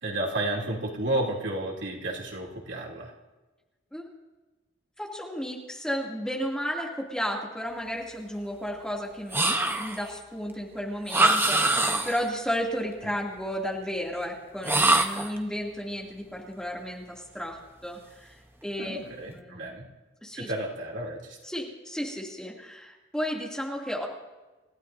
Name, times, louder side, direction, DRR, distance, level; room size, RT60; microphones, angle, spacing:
voice 1, 0.0-3.1 18.8-19.8 20.3-21.4, right 1 dB, 75° right, -2 dB, 3.1 m, -32 dB
voice 2, 5.0-18.4 18.6-19.0 19.3-19.8 20.2-20.5 21.4-24.1, equal, 5° left, -2 dB, 2.6 m, -33 dB
sound 1, 9.3-10.1 11.1-12.3 14.6-15.4, right 2 dB, 10° right, 0.9 m, -23 dB
29.0 x 15.5 x 2.7 m, 1.2 s
head